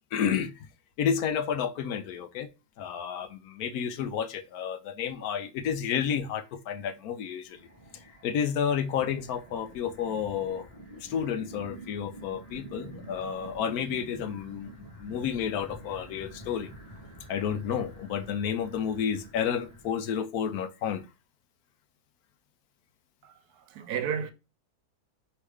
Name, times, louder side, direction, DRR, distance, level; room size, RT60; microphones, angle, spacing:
voice 1, 0.1-0.5 1.0-2.5 2.8-7.6 8.2-10.7 11.0-14.7 15.0-16.7 17.3-21.0, left 8 dB, 70° left, 1.0 m, -31 dB
sound 1, 7.5-19.9, right 1 dB, 10° left, 2.9 m, -48 dB
voice 2, 23.2-24.3, right 7 dB, 75° right, 1.1 m, -33 dB
4.8 x 3.1 x 3.3 m
omnidirectional pair, 1.7 m